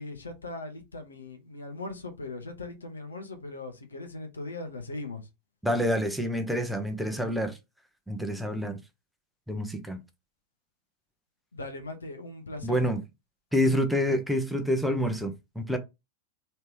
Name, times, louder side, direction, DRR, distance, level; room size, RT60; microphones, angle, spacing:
voice 1, 0.0-5.2 11.5-12.9, left 2 dB, 75° left, 0.8 m, -39 dB
voice 2, 5.6-7.5 8.1-8.8 9.5-10.0 12.6-13.0 13.5-15.8, equal, ahead, 0.7 m, -27 dB
3.1 x 2.8 x 3.4 m
figure-of-eight pair, 90°, 0 cm